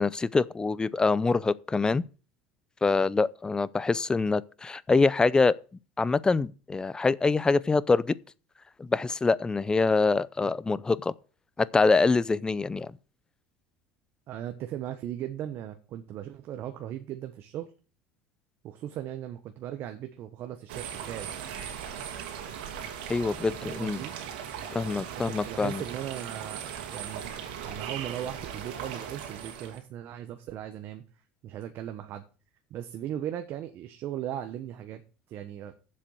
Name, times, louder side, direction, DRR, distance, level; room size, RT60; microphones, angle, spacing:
voice 1, 0.0-2.1 2.8-5.5 6.0-8.1 8.8-11.1 11.6-12.9 23.1-24.0 24.7-25.8, left 4 dB, 15° left, 0.5 m, -25 dB
voice 2, 14.3-17.7 18.6-21.3 22.0-22.1 23.6-24.1 25.3-27.4 27.6-31.0 31.4-32.2 32.7-35.0 35.3-35.7, right 11 dB, 55° right, 1.1 m, -38 dB
sound 1, 20.7-29.8, right 8 dB, 80° right, 2.4 m, -38 dB
7.6 x 6.6 x 7.8 m
supercardioid pair, 100°, 5 cm